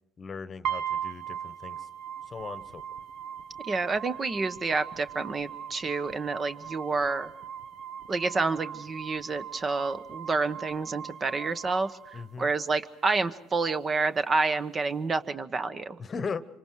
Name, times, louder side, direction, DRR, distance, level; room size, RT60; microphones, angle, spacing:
voice 1, 0.2-1.9 2.3-2.8 12.1-12.5 16.0-16.5, left 5 dB, 35° left, 14 dB, 1.1 m, -38 dB
sound 1, 0.6-12.7, right 9 dB, 65° right, 1.1 m, -39 dB
voice 2, 3.7-7.3 8.1-11.9 12.4-16.0, right 3 dB, 35° right, 12 dB, 1.1 m, -29 dB
26.5 x 25.0 x 4.8 m, 0.79 s
hypercardioid pair, 65°, 0 cm